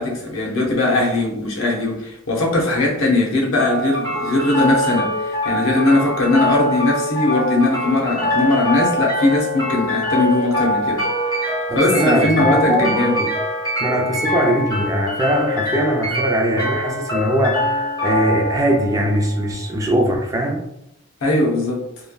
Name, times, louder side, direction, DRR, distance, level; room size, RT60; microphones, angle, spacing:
voice 1, 0.0-11.1 11.7-13.2 21.2-21.8, left 2 dB, 85° left, 0.8 m, -19 dB
sound 1, 3.6-19.6, left 1 dB, 20° left, 0.8 m, -23 dB
voice 2, 11.7-13.3 13.8-20.6, right 1 dB, 15° right, 0.3 m, -21 dB
3.3 x 2.1 x 2.2 m
head